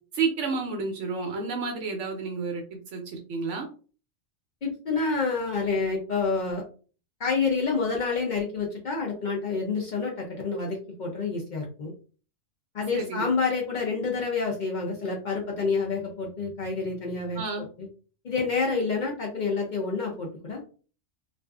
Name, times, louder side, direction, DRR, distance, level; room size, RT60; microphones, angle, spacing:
voice 1, 0.1-2.6 2.9-3.7 12.9-13.2 17.4-17.7, right 4 dB, 70° right, 3 dB, 0.9 m, -30 dB
voice 2, 4.6-6.6 7.2-11.9 12.7-17.9 18.2-20.6, left 4 dB, 65° left, -1 dB, 0.5 m, -28 dB
2.5 x 2.4 x 2.3 m, 0.38 s
omnidirectional pair, 1.4 m